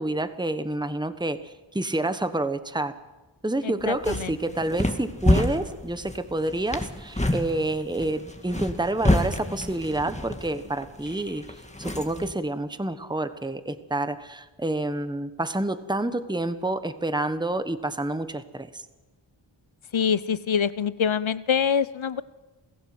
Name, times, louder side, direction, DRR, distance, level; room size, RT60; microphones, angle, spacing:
voice 1, 0.0-2.9 3.4-11.4 11.8-18.8, right 2 dB, 10° right, 11 dB, 1.3 m, -28 dB
voice 2, 3.6-4.3 19.9-22.2, left 7 dB, 75° left, 16 dB, 0.9 m, -25 dB
sound 1, 3.8-12.3, left 1 dB, 15° left, 2.2 m, -28 dB
28.0 x 16.5 x 7.9 m, 1.1 s
wide cardioid pair, 45°, 47 cm